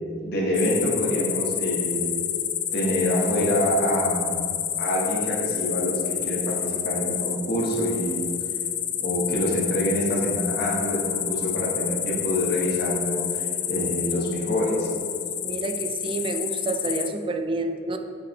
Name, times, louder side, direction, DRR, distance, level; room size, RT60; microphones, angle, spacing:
voice 1, 0.2-2.2 2.7-6.0 6.3-8.3 9.0-14.9, equal, 60° left, -4 dB, 1.4 m, -26 dB
sound 1, 0.5-17.1, left 10 dB, 40° left, 0.4 m, -29 dB
voice 2, 15.4-18.0, right 2 dB, 30° right, 6 dB, 0.4 m, -29 dB
7.1 x 5.2 x 3.2 m, 2.5 s
head